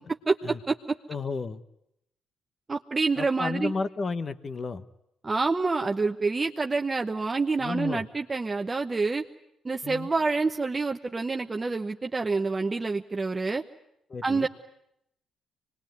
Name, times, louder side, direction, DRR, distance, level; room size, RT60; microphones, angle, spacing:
voice 1, 0.3-0.8 2.7-3.7 5.2-9.2 9.6-13.6 14.2-14.5, right 3 dB, 30° right, 4 dB, 0.9 m, -27 dB
voice 2, 1.1-1.6 3.2-4.9 7.6-8.1 9.8-10.1 14.1-14.5, left 4 dB, 45° left, 12 dB, 1.1 m, -32 dB
24.5 x 21.0 x 9.3 m, 0.79 s
supercardioid pair, 55°, 0 cm